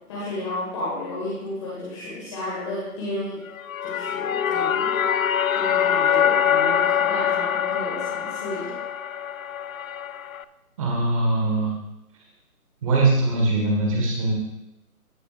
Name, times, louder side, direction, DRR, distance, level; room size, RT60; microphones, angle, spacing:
voice 1, 0.1-3.4 3.8-5.1 5.5-8.8, left 1 dB, 20° left, -7 dB, 1.7 m, -32 dB
sound 1, 3.5-10.4, left 9 dB, 65° left, 0.5 m, -24 dB
voice 2, 10.8-11.7 12.8-14.3, right 2 dB, 20° right, 0 dB, 1.7 m, -21 dB
16.0 x 6.5 x 2.5 m, 0.89 s
hypercardioid pair, 165°, 45 cm